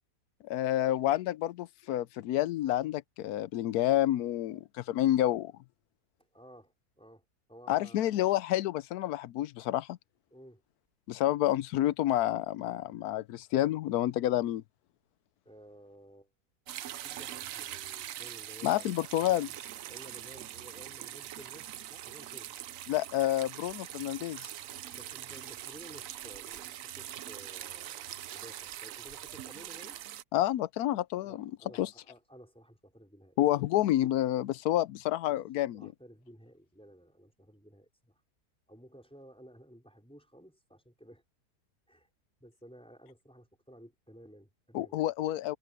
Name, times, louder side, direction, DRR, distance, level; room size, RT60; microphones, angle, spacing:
voice 1, 0.4-5.5 7.7-10.0 11.1-14.6 18.6-19.5 22.9-24.5 30.3-31.9 33.4-35.9 44.7-45.6, left 13 dB, 70° left, 1.0 m, -29 dB
voice 2, 6.3-8.0 10.3-10.6 15.4-16.3 17.0-18.9 19.9-22.6 24.9-30.0 31.2-33.4 35.3-35.4 35.7-38.2 38.7-41.2 41.9-42.1 42.4-45.1, equal, 5° left, 4.4 m, -54 dB
sound 1, 16.7-30.2, right 12 dB, 65° right, 0.9 m, -43 dB
omnidirectional pair, 1.8 m